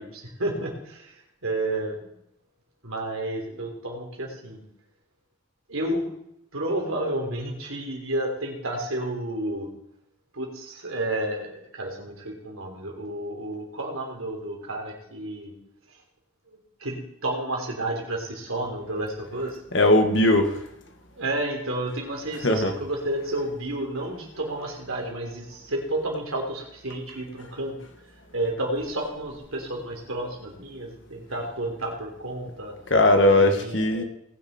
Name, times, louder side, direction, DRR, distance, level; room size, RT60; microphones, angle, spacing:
voice 1, 0.0-2.2 2.8-4.6 5.7-6.1 6.5-9.7 10.3-15.5 15.9-16.0 16.5-19.6 21.1-27.8 28.1-32.7 33.3-34.0, right 1 dB, 85° right, 0 dB, 3.6 m, -31 dB
voice 2, 19.7-20.6 22.4-22.7 32.9-34.0, left 1 dB, 60° left, 5 dB, 1.7 m, -19 dB
19.5 x 6.9 x 4.4 m, 0.76 s
head